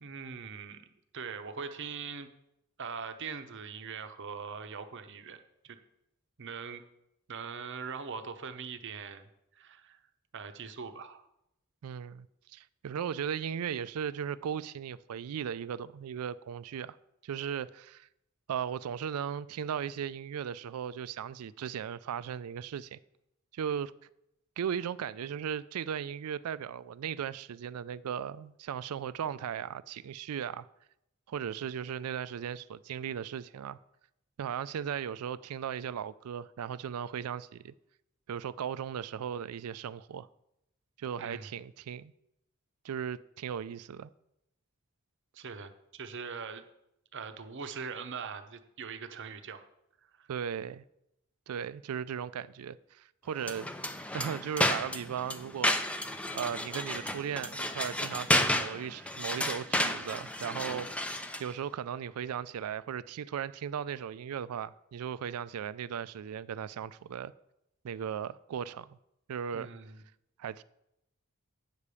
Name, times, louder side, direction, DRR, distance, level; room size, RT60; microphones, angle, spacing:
voice 1, 0.0-2.3 2.8-5.4 5.6-5.8 6.4-6.8 7.3-10.0 10.3-11.2 41.2-41.5 45.3-46.6 47.1-49.7 50.2-50.3 69.5-70.0, right 5 dB, 55° right, 0.7 m, -42 dB
voice 2, 11.8-17.0 17.2-18.1 18.5-23.0 23.5-23.9 24.6-30.7 31.3-33.8 34.4-37.7 38.3-40.3 41.0-42.1 42.8-44.1 50.3-50.8 51.5-55.8 56.3-61.1 61.4-67.3 67.8-69.0 69.3-69.7 70.4-70.6, right 8 dB, 85° right, 0.4 m, -37 dB
sound 1, 53.4-61.5, left 1 dB, 5° left, 0.4 m, -32 dB
8.4 x 5.0 x 6.9 m
head